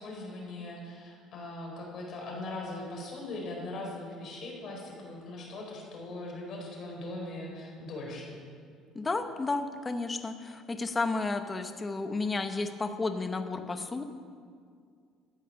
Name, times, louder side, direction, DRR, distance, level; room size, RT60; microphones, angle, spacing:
voice 1, 0.0-8.4, left 2 dB, 45° left, -1 dB, 4.3 m, -40 dB
voice 2, 8.9-14.0, left 3 dB, 15° left, 7 dB, 0.9 m, -32 dB
14.0 x 9.1 x 7.0 m, 2.2 s
cardioid pair, 150°, 0 cm